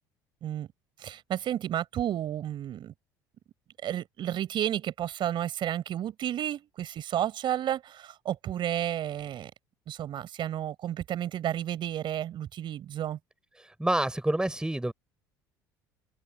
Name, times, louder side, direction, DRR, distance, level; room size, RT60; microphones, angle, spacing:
voice 1, 1.0-2.9 3.8-9.5 9.9-13.2, right 11 dB, 55° right, 4.8 m, -32 dB
voice 2, 13.8-14.9, right 1 dB, 10° right, 4.6 m, -27 dB
open air
hypercardioid pair, 70°, 10 cm